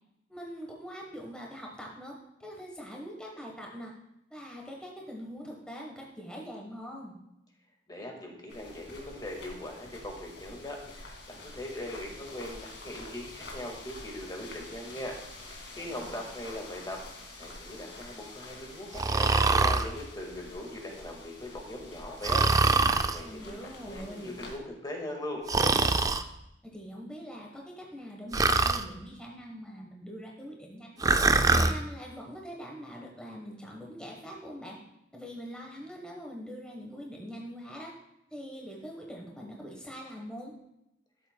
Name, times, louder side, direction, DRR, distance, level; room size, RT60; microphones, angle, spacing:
voice 1, 0.3-2.1 2.4-3.9 4.3-7.2 15.9-16.2 23.2-24.4 26.6-31.1 31.5-34.8 35.1-37.9 38.3-40.5, equal, 5° left, -1 dB, 1.1 m, -43 dB
voice 2, 7.9-15.2 15.5-17.0 17.4-22.7 22.9-25.4, left 1 dB, 25° left, 1 dB, 1.7 m, -40 dB
sound 1, 8.5-24.6, left 2 dB, 80° left, 2.1 m, -47 dB
Breathing, 18.9-19.9 22.2-23.2 25.5-26.2 28.3-28.8 31.0-31.7, right 3 dB, 20° right, 0.4 m, -23 dB
13.0 x 7.5 x 2.2 m, 0.84 s
head